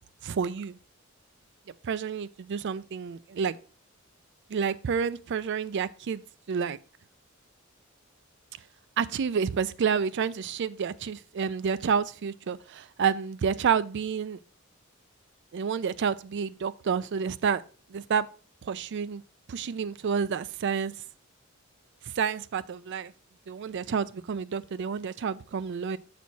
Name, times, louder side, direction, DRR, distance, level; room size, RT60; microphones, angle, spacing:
voice 1, 0.2-0.8 1.8-3.6 4.5-6.2 6.5-6.8 9.0-14.4 15.5-17.6 17.9-18.3 18.6-19.2 19.5-20.9 22.2-23.1 23.5-26.0, right 6 dB, 55° right, 0.4 m, -29 dB
7.3 x 6.2 x 2.7 m
head